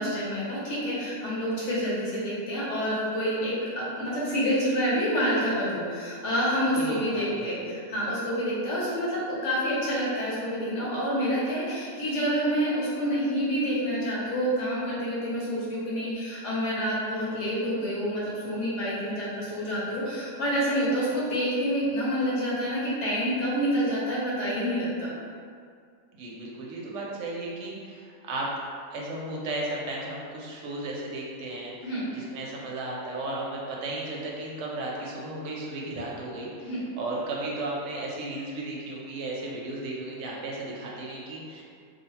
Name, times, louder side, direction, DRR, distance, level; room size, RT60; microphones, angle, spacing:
voice 1, 0.0-25.1 31.8-32.0 36.6-36.8, equal, 70° left, -7 dB, 1.1 m, -28 dB
voice 2, 6.7-7.5 26.1-28.5 28.9-41.6, right 2 dB, 70° right, -3 dB, 0.9 m, -35 dB
2.6 x 2.1 x 2.8 m, 2.2 s
omnidirectional pair, 1.4 m